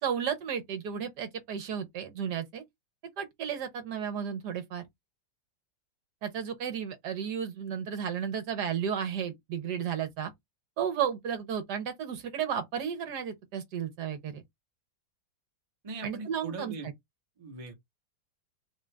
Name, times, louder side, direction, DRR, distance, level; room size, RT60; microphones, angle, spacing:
voice 1, 0.0-2.6 3.2-4.8 6.2-10.3 10.8-14.4 16.0-16.9, right 8 dB, 65° right, 1.3 m, -33 dB
voice 2, 15.8-16.9 17.4-17.7, right 3 dB, 25° right, 0.7 m, -40 dB
3.8 x 2.4 x 3.2 m
omnidirectional pair, 2.0 m